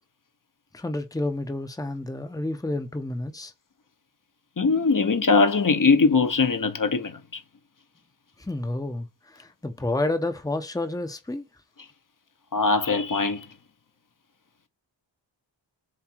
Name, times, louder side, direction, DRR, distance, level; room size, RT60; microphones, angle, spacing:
voice 1, 0.7-3.5 8.4-11.4, left 2 dB, 10° left, 1.1 m, -30 dB
voice 2, 4.6-7.4 12.5-13.5, left 4 dB, 45° left, 1.3 m, -21 dB
7.6 x 2.7 x 4.6 m
cardioid pair, 50°, 44 cm